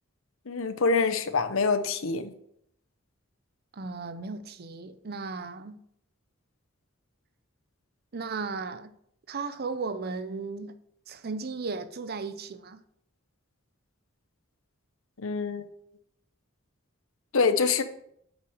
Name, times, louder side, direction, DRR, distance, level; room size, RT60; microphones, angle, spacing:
voice 1, 0.5-2.3 15.2-15.6 17.3-17.8, left 4 dB, 75° left, 0.8 m, -25 dB
voice 2, 3.7-5.8 8.1-8.9 9.3-10.7 11.1-12.8, right 4 dB, 50° right, 0.6 m, -35 dB
8.3 x 5.8 x 4.9 m
head